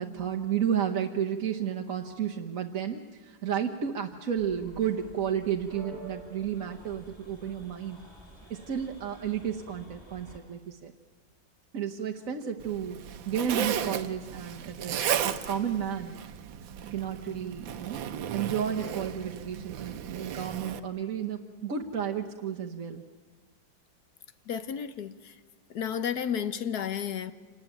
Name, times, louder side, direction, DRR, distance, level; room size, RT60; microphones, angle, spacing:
voice 1, 0.0-8.0 8.5-10.9 11.7-15.0 15.2-16.1 16.9-18.0 18.3-23.0, right 8 dB, 50° right, 1.4 m, -32 dB
sound 1, 4.4-10.4, right 2 dB, 10° left, 7.2 m, -49 dB
Zipper (clothing), 12.6-20.8, right 9 dB, 80° right, 1.7 m, -35 dB
voice 2, 24.5-25.3 25.7-27.3, left 8 dB, 60° left, 1.4 m, -32 dB
27.0 x 19.0 x 9.1 m
omnidirectional pair, 2.1 m